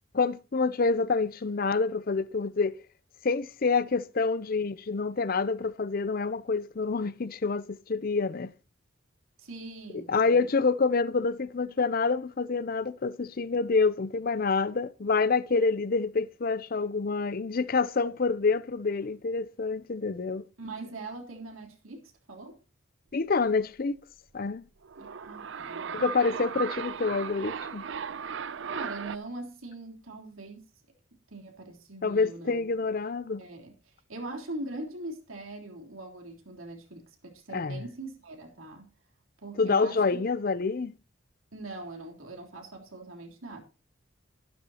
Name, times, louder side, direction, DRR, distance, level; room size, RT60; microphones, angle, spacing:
voice 1, 0.1-2.7 3.2-8.5 9.9-20.4 23.1-24.0 24.3-24.6 25.9-27.8 32.0-33.4 37.5-37.8 39.6-40.9, left 4 dB, 45° left, 0.5 m, -27 dB
voice 2, 9.4-10.5 20.6-22.6 25.0-26.0 28.6-30.7 31.3-32.7 33.4-33.7 34.1-38.9 39.4-40.0 41.5-43.6, right 2 dB, 90° right, 3.4 m, -42 dB
sound 1, 24.8-29.2, right 7 dB, 60° right, 0.5 m, -36 dB
13.5 x 11.5 x 2.9 m
head